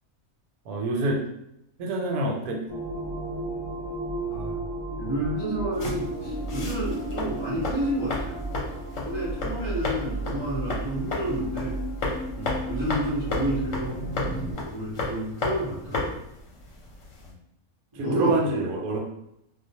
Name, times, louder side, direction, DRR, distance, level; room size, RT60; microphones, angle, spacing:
voice 1, 0.6-1.3 1.8-2.7 12.4-12.6 17.3-17.4 17.9-19.0, right 2 dB, 75° right, 1 dB, 1.0 m, -27 dB
sound 1, 2.7-14.5, right 1 dB, 20° left, 1.1 m, -33 dB
voice 2, 4.3-4.6 5.0-11.8 12.6-14.0 14.6-16.2 17.9-18.6, right 1 dB, 35° right, -9 dB, 0.4 m, -30 dB
sound 2, 5.7-17.3, left 2 dB, 65° left, 0.9 m, -34 dB
2.4 x 2.1 x 2.7 m, 0.82 s
omnidirectional pair, 1.6 m